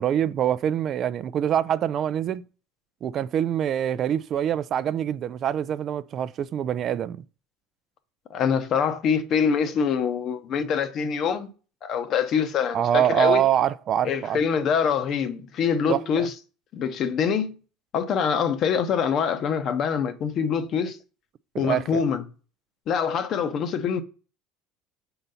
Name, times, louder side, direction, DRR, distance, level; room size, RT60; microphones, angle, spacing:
voice 1, 0.0-2.4 3.0-7.2 12.7-14.4 15.9-16.3 21.5-22.0, right 10 dB, 45° right, 0.3 m, -25 dB
voice 2, 8.3-11.5 11.8-13.4 14.0-16.3 16.7-17.5 17.9-21.0 21.6-22.2 22.9-24.0, left 7 dB, 50° left, 0.8 m, -24 dB
4.4 x 3.9 x 5.5 m
supercardioid pair, 100°, 0 cm